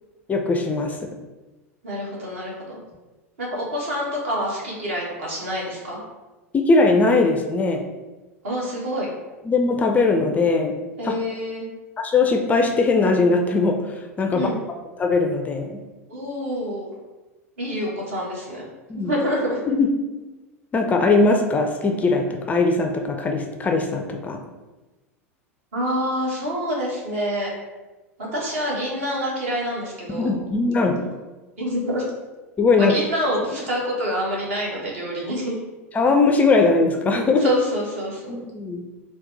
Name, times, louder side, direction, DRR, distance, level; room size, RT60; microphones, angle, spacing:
voice 1, 0.3-1.1 6.5-7.8 9.4-10.8 11.0-11.1 12.0-14.5 15.0-15.8 18.9-19.1 19.7-19.9 20.7-24.4 30.1-31.0 32.6-32.9 35.9-37.5 38.3-38.8, left 3 dB, 20° left, 4 dB, 0.4 m, -20 dB
voice 2, 1.8-2.8 3.4-6.0 8.4-9.1 11.0-11.7 14.3-14.6 16.1-16.9 17.6-18.6 19.1-19.6 25.7-27.5 28.3-30.4 31.6-32.0 32.8-35.6 37.4-38.4, equal, 60° right, -3 dB, 1.4 m, -27 dB
4.1 x 2.1 x 3.9 m, 1.2 s
figure-of-eight pair, 85°, 8 cm